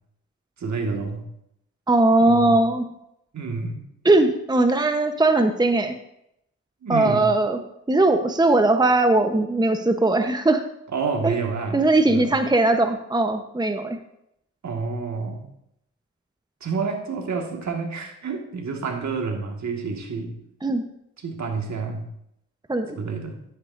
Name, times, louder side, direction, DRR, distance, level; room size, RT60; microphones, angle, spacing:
voice 1, 0.6-1.3 2.2-2.6 3.3-3.8 6.8-7.3 10.9-12.4 14.6-15.5 16.6-20.4 21.2-22.1 22.9-23.4, right 4 dB, 60° right, 3 dB, 2.0 m, -29 dB
voice 2, 1.9-2.9 4.0-5.9 6.9-7.6 7.9-10.6 11.2-11.3 11.7-14.0 20.6-20.8 22.7-23.0, right 2 dB, 15° right, 6 dB, 1.0 m, -19 dB
11.5 x 10.0 x 2.7 m, 0.77 s
supercardioid pair, 40°, 32 cm